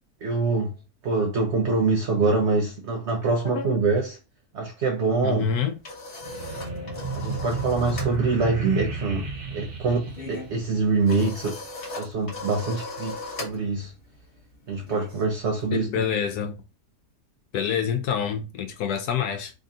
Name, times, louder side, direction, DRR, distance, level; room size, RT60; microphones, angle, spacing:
voice 1, 0.2-0.7 1.0-4.2 4.5-5.5 7.2-11.6 12.0-13.9 14.7-15.9, right 3 dB, 60° right, 0.8 m, -25 dB
voice 2, 5.2-5.8 15.7-16.5 17.5-19.5, left 7 dB, 75° left, 1.1 m, -27 dB
sound 1, 5.5-8.2 8.4-8.7 9.0-15.7, left 2 dB, 40° left, 1.0 m, -39 dB
sound 2, 6.2-11.2, right 4 dB, 75° right, 0.4 m, -33 dB
3.3 x 2.7 x 3.6 m
omnidirectional pair, 1.8 m